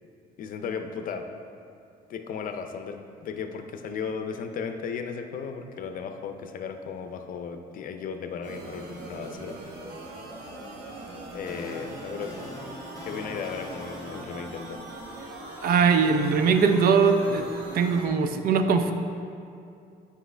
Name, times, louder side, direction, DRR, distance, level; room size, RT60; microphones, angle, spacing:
voice 1, 0.4-1.3 2.1-9.8 11.3-12.4 13.0-14.8, left 6 dB, 55° left, 7 dB, 0.5 m, -35 dB
sound 1, 8.4-18.1, right 2 dB, 85° right, 1.1 m, -41 dB
sound 2, 11.0-15.2, left 2 dB, 20° left, 0.7 m, -43 dB
voice 2, 15.6-17.5 17.7-18.9, right 5 dB, 60° right, 7 dB, 0.5 m, -21 dB
7.9 x 5.0 x 3.3 m, 2.5 s
cardioid pair, 110°, 17 cm